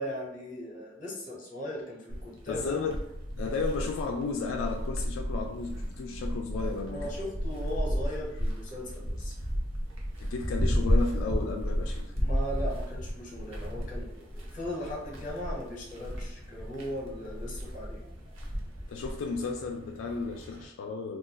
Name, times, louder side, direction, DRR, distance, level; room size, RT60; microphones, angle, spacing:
voice 1, 0.0-2.9 6.9-9.3 12.1-18.1, equal, 40° left, -3 dB, 0.9 m, -38 dB
sound 1, 2.1-20.6, equal, 90° right, 0.8 m, -33 dB
voice 2, 2.5-3.0 3.4-7.1 10.2-12.1 18.9-21.2, left 4 dB, 85° left, 3 dB, 0.3 m, -33 dB
2.5 x 2.3 x 3.8 m, 0.82 s
head